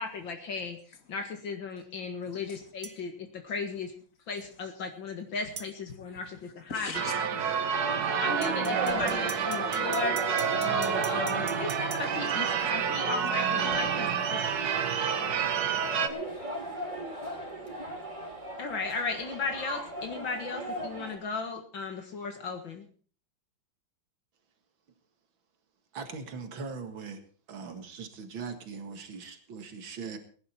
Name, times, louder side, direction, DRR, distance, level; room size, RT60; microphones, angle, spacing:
voice 1, 0.0-3.9 4.3-6.9 7.2-7.4 8.1-14.7 18.6-22.9, left 4 dB, 70° left, 2.5 m, -36 dB
sound 1, 2.8-3.0 5.6-5.7 8.4-12.0, right 5 dB, 40° right, 1.1 m, -42 dB
voice 2, 6.7-8.2 12.2-12.3 15.2-16.7, left 5 dB, 45° left, 2.0 m, -46 dB
Church bell / Car / Alarm, 6.9-16.1, right 7 dB, 55° right, 1.6 m, -29 dB
sound 2, 8.2-21.2, right 1 dB, 20° right, 4.3 m, -37 dB
voice 3, 25.9-27.2 27.5-30.2, right 5 dB, 75° right, 2.6 m, -40 dB
20.0 x 10.5 x 4.4 m
omnidirectional pair, 2.2 m